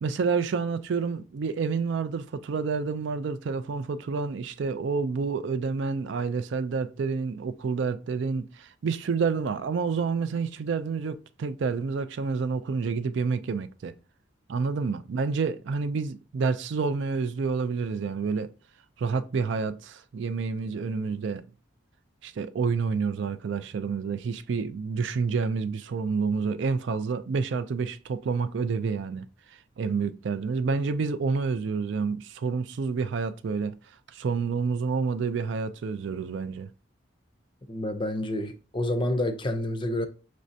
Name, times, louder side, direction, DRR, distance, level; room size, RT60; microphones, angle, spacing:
voice 1, 0.0-13.9 14.5-18.5 19.0-21.4 22.2-29.3 29.8-33.8 34.1-36.7, right 5 dB, 60° right, 0.3 m, -29 dB
voice 2, 37.7-40.1, left 1 dB, 25° left, 0.5 m, -28 dB
6.2 x 3.2 x 2.7 m
head